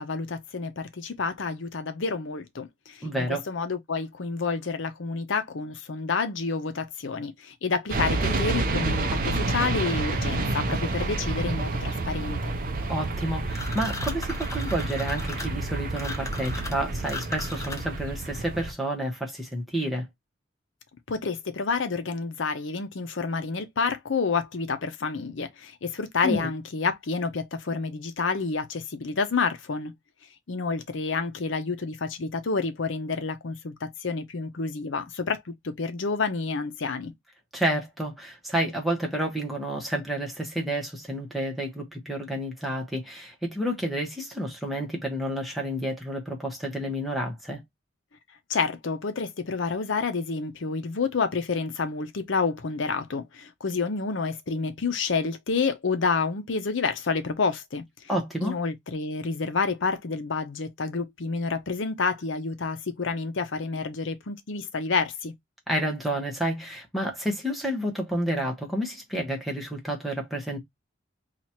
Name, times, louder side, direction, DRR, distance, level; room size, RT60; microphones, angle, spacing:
voice 1, 0.0-12.5 21.1-29.9 30.5-37.1 48.5-57.8 58.4-65.3, left 4 dB, 80° left, 0.7 m, -29 dB
voice 2, 3.0-3.4 12.9-20.0 26.2-26.5 37.5-47.6 58.1-58.5 65.7-70.6, right 1 dB, ahead, 1.1 m, -30 dB
sound 1, 7.9-18.7, right 2 dB, 45° right, 0.6 m, -29 dB
sound 2, 13.5-18.1, left 2 dB, 15° left, 0.5 m, -37 dB
2.9 x 2.4 x 4.2 m
head